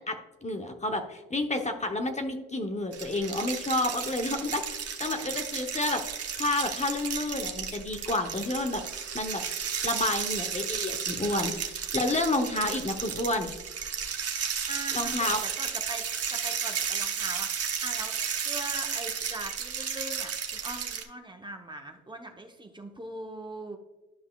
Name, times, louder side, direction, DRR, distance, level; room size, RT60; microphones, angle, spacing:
voice 1, 0.1-6.0 6.4-8.8 9.1-9.4 9.8-11.5 11.9-13.5 14.9-15.4, left 2 dB, 25° left, 4 dB, 0.8 m, -30 dB
sound 1, 2.9-21.0, right 7 dB, 50° right, 1.1 m, -33 dB
voice 2, 14.7-16.0 16.3-18.2 18.4-23.8, right 1 dB, 15° right, 3 dB, 0.8 m, -41 dB
sound 2, 15.7-19.9, right 12 dB, 85° right, 0.8 m, -43 dB
11.0 x 5.4 x 2.3 m, 1.1 s
cardioid pair, 90°, 30 cm